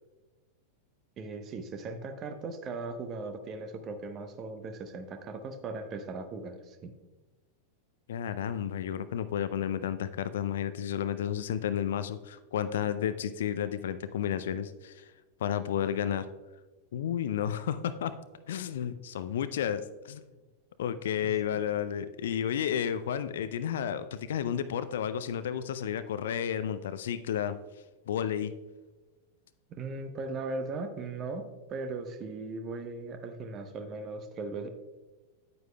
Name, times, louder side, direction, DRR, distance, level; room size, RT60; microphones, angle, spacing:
voice 1, 1.2-6.9 29.7-34.7, right 3 dB, 30° right, 7 dB, 0.8 m, -38 dB
voice 2, 8.1-15.1 15.4-16.3 16.9-18.1 18.5-20.3 20.8-27.6 28.1-28.5, left 9 dB, 60° left, 13 dB, 0.4 m, -32 dB
9.5 x 9.3 x 2.2 m, 1.2 s
figure-of-eight pair, 90°, 0 cm